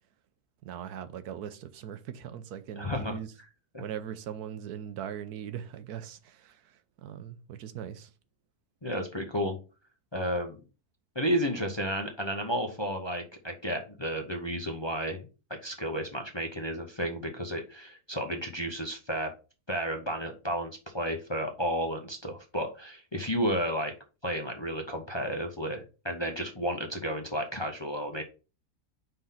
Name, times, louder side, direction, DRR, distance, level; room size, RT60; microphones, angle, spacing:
voice 1, 0.6-3.3 3.8-8.1, right 9 dB, 80° right, 1.2 m, -40 dB
voice 2, 2.8-3.2 8.8-9.6 10.1-10.6 11.1-19.3 19.7-23.9 24.2-28.2, equal, 25° left, 0.7 m, -32 dB
5.2 x 3.8 x 5.6 m
omnidirectional pair, 1.6 m